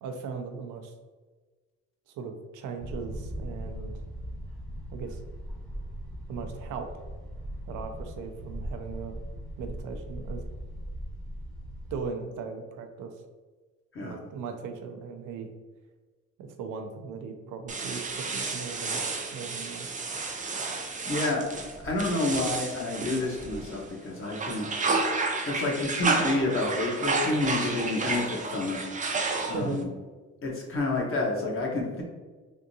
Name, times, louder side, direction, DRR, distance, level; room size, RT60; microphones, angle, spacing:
voice 1, 0.0-0.9 2.2-3.9 4.9-5.2 6.3-7.0 7.7-9.2 9.6-10.4 11.9-13.1 14.0-15.5 16.4-19.0 19.3-19.9 29.5-29.8, right 5 dB, 85° right, 5 dB, 0.5 m, -38 dB
sound 1, 2.8-12.1, equal, 5° left, 0.8 m, -39 dB
sound 2, 17.7-23.9 24.2-29.8, right 3 dB, 25° right, 0.5 m, -31 dB
voice 2, 20.6-21.4 21.8-24.7 25.5-28.8 29.5-29.9 30.4-32.0, left 2 dB, 45° left, -2 dB, 1.0 m, -29 dB
3.5 x 2.6 x 2.7 m, 1.3 s
cardioid pair, 90°, 30 cm